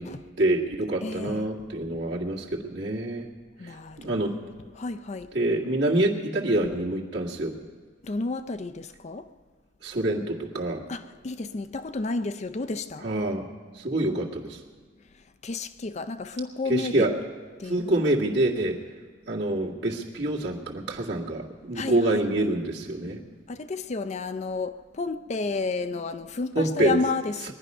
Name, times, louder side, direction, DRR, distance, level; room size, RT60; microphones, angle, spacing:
voice 1, 0.4-3.3 4.0-4.3 5.3-7.6 9.8-10.8 13.0-13.5 13.8-14.6 16.7-17.1 17.6-18.8 19.3-23.2 26.6-27.0, right 1 dB, 65° right, 1.9 m, -26 dB
voice 2, 1.0-1.5 3.6-4.5 4.7-5.3 8.0-9.3 10.9-13.1 15.1-17.1 17.6-18.0 21.7-22.5 23.5-27.5, left 3 dB, 35° left, 0.4 m, -31 dB
21.0 x 10.5 x 5.5 m
head